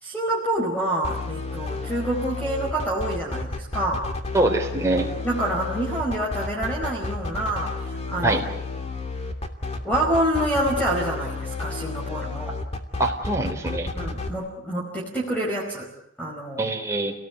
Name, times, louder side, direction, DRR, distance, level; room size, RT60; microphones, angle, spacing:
voice 1, 0.0-4.1 5.2-8.4 9.8-12.5 13.9-15.9 16.2-16.7, right 1 dB, 10° left, -2 dB, 4.9 m, -27 dB
sound 1, 1.0-14.3, left 3 dB, 30° left, 2.8 m, -31 dB
voice 2, 4.3-5.1 8.2-8.4 13.0-13.9 16.6-17.1, right 2 dB, 15° right, 1 dB, 4.0 m, -23 dB
30.0 x 18.5 x 8.3 m, 0.76 s
head